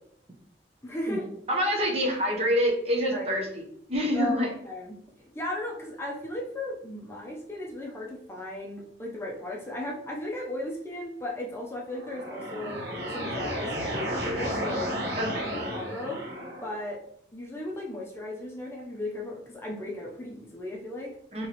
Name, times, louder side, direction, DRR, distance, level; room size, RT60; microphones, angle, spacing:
voice 1, 0.8-1.3 3.1-3.5 4.1-12.8 13.1-14.9 15.7-16.2 16.6-17.0 17.3-21.2, left 1 dB, 15° left, -3 dB, 0.6 m, -36 dB
voice 2, 1.5-3.5 3.9-4.5 15.2-15.6 21.3-21.5, equal, 35° right, 0 dB, 0.8 m, -26 dB
sound 1, 11.8-16.8, equal, 60° right, 1.4 m, -33 dB
4.4 x 3.0 x 2.9 m, 0.68 s
head